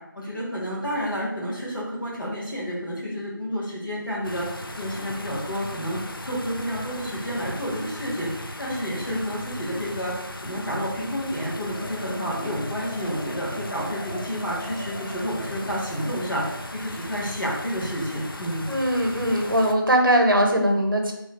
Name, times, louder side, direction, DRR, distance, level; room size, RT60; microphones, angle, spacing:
voice 1, 0.1-4.5 4.8-10.1 10.4-18.7, equal, 65° left, -5 dB, 1.3 m, -30 dB
sound 1, 4.2-19.7, left 1 dB, 80° left, 0.4 m, -37 dB
sound 2, 11.7-16.6, equal, 35° left, 0.6 m, -42 dB
voice 2, 18.7-21.1, equal, 70° right, 3 dB, 0.7 m, -20 dB
3.1 x 2.1 x 3.5 m, 0.86 s
figure-of-eight pair, 180°, 12 cm